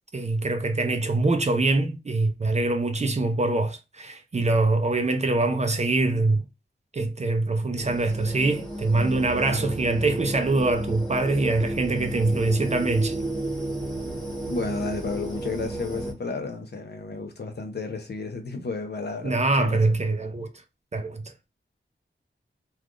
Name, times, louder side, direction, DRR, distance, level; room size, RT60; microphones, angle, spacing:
voice 1, 0.1-6.5 6.9-13.2 19.2-20.5 20.9-21.5, right 2 dB, 35° right, 0.4 m, -24 dB
sound 1, 7.8-16.1, right 1 dB, ahead, 1.2 m, -33 dB
voice 2, 14.5-19.8, left 3 dB, 55° left, 0.7 m, -32 dB
3.3 x 2.3 x 2.4 m
wide cardioid pair, 90°, 20 cm